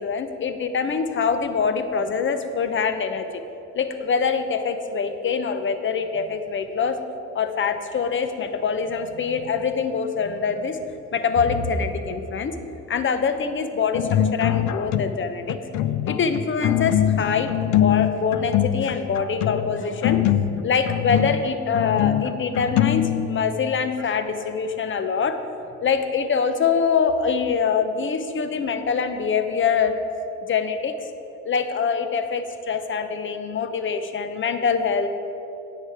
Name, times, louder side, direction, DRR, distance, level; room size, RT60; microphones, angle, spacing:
voice 1, 0.0-3.3 3.7-7.0 7.3-10.8 11.1-12.5 12.9-15.6 16.1-20.2 20.6-25.4 25.8-29.9 30.5-30.9 31.4-35.1, left 5 dB, 40° left, 9 dB, 0.8 m, -24 dB
sound 1, 13.9-15.2 15.5-23.6, left 11 dB, 75° left, 0.4 m, -23 dB
9.8 x 7.5 x 4.8 m, 3.0 s
cardioid pair, 90°, 30 cm